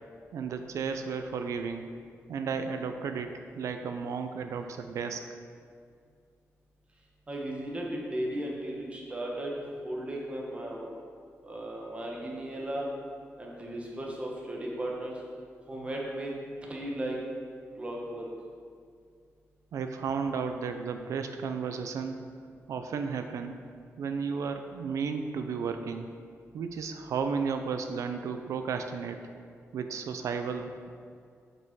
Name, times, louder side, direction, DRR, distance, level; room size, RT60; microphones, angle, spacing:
voice 1, 0.3-1.9 2.3-5.4 19.7-22.2 22.7-23.6 24.0-26.1 26.5-29.2 29.7-30.9, right 5 dB, 85° right, 7 dB, 0.4 m, -33 dB
voice 2, 7.3-10.9 11.4-12.9 13.4-15.2 15.7-16.3 16.7-17.2 17.8-18.2, right 1 dB, 25° right, -2 dB, 1.1 m, -35 dB
6.0 x 5.4 x 4.6 m, 2.2 s
wide cardioid pair, 130°, 5 cm